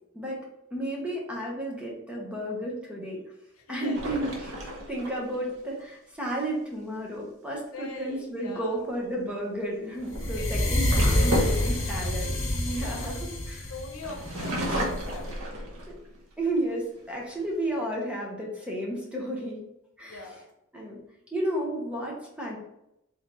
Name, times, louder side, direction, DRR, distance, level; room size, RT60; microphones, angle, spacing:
voice 1, 0.1-3.2 3.7-13.7 15.9-16.0 16.4-19.6 20.0-20.4 20.7-21.0 21.3-22.6, right 1 dB, 5° right, -2 dB, 0.9 m, -32 dB
voice 2, 3.7-4.0 7.7-8.9 10.4-10.7 11.1-12.0 12.7-13.1 13.7-15.8 20.0-20.4, left 2 dB, 85° left, 3 dB, 0.8 m, -42 dB
sound 1, 3.9-5.5 8.5-8.8 9.8-13.5 14.0-16.2 16.7-16.8 17.1-17.7, equal, 80° right, 0.9 m, -33 dB
sound 2, 10.1-15.2, left 1 dB, 65° left, 1.3 m, -27 dB
3.9 x 3.4 x 2.9 m, 0.83 s
head